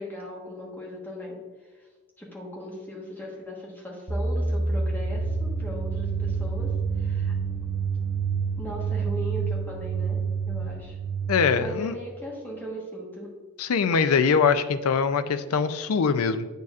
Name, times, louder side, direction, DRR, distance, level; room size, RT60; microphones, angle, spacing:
voice 1, 0.0-1.9 2.2-7.3 8.6-10.2 10.5-11.0 11.5-13.3, left 1 dB, 10° left, -3 dB, 1.3 m, -38 dB
sound 1, 4.1-11.8, right 5 dB, 45° right, 0.8 m, -28 dB
voice 2, 11.3-12.0 13.6-16.5, left 5 dB, 75° left, 12 dB, 0.4 m, -23 dB
8.3 x 6.6 x 2.4 m, 1.3 s
head